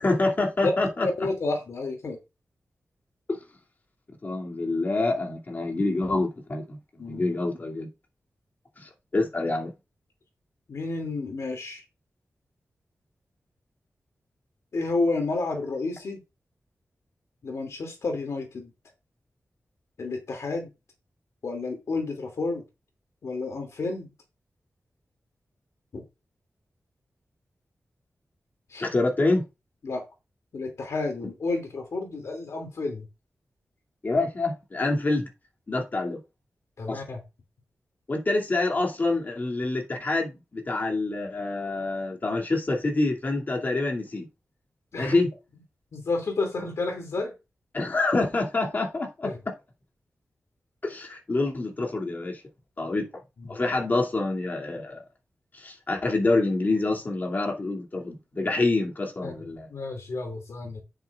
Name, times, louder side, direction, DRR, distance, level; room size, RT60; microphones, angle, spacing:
voice 1, 0.0-1.1 3.3-3.4 4.2-6.8 7.1-7.9 8.8-9.7 28.8-29.4 34.0-35.3 35.7-36.2 36.9-37.0 38.1-44.3 45.0-45.3 47.7-49.5 50.8-52.4 52.8-53.1 53.5-55.0 55.5-59.7, left 2 dB, 40° left, 2.6 m, -26 dB
voice 2, 1.0-2.2 7.0-7.2 10.7-11.8 14.7-16.2 17.4-18.7 20.0-20.7 21.4-22.6 23.2-24.1 25.9-26.0 28.7-28.9 29.8-30.0 30.5-33.1 36.8-37.2 44.9-45.2 45.9-47.3 49.2-49.4 59.2-59.3 59.7-60.8, left 3 dB, 80° left, 2.6 m, -30 dB
10.0 x 9.1 x 2.4 m
wide cardioid pair, 145°, 5 cm